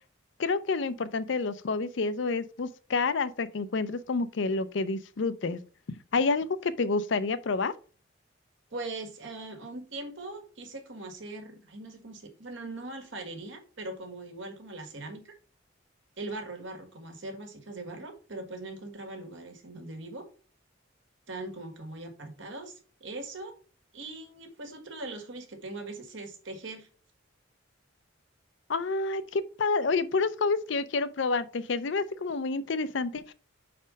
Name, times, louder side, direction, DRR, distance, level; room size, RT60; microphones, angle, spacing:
voice 1, 0.4-5.6 6.1-7.7 28.7-33.3, left 4 dB, 70° left, 0.5 m, -29 dB
voice 2, 8.7-15.3 16.2-20.2 21.3-23.5 23.9-26.9, right 2 dB, 75° right, 1.7 m, -41 dB
5.2 x 4.3 x 5.1 m
head